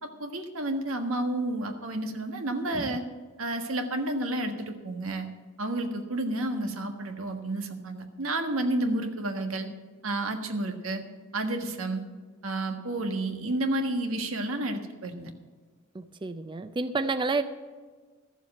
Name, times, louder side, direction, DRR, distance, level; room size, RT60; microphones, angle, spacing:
voice 1, 0.0-3.0 3.4-5.3 5.6-9.7 10.0-11.0 11.3-12.0 12.4-15.3, right 1 dB, 90° right, 5 dB, 1.5 m, -30 dB
voice 2, 2.7-3.0 15.9-17.4, right 3 dB, 25° right, 10 dB, 0.4 m, -30 dB
13.5 x 7.3 x 7.6 m, 1.4 s
head